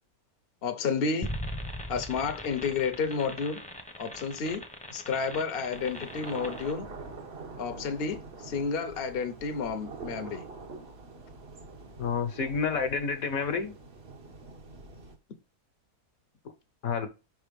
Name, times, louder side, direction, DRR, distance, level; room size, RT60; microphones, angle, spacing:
voice 1, 0.6-1.3 1.9-3.6 4.0-4.6 4.9-6.9 7.6-8.2 8.4-10.4, left 5 dB, 50° left, 0.9 m, -31 dB
sound 1, 1.2-6.7, equal, 5° left, 0.8 m, -40 dB
sound 2, 5.7-15.2, right 3 dB, 45° right, 1.2 m, -45 dB
voice 2, 12.0-13.7 16.8-17.1, left 5 dB, 70° left, 1.4 m, -29 dB
5.6 x 3.8 x 5.1 m
omnidirectional pair, 1.6 m